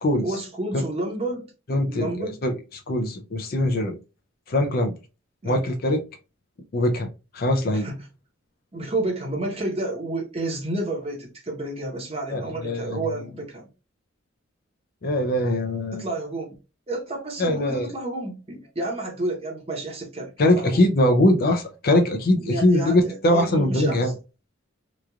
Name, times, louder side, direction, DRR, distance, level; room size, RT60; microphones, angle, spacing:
voice 1, 0.2-1.5 1.9-2.4 5.4-5.8 7.7-8.1 8.7-13.7 15.9-16.6 16.9-20.8 22.4-24.1, right 2 dB, 30° right, 0.8 m, -30 dB
voice 2, 1.7-2.5 2.9-4.0 4.5-4.9 5.4-6.0 6.7-7.1 7.3-7.9 12.3-13.0 15.0-16.0 17.4-17.9 20.4-24.1, left 1 dB, 50° left, 0.5 m, -22 dB
3.0 x 2.4 x 2.3 m
head